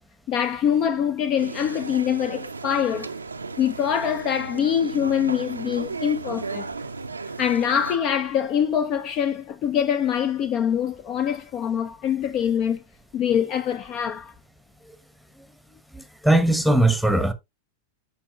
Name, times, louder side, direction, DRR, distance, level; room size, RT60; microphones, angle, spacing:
voice 1, 0.3-3.1 3.6-6.7 7.4-12.8 13.1-14.3, left 9 dB, 35° left, 0.5 m, -24 dB
sound 1, 1.4-8.0, right 4 dB, 80° right, 0.5 m, -35 dB
voice 2, 15.9-17.3, right 1 dB, ahead, 1.0 m, -19 dB
13.5 x 4.5 x 2.3 m
figure-of-eight pair, 90°, 0 cm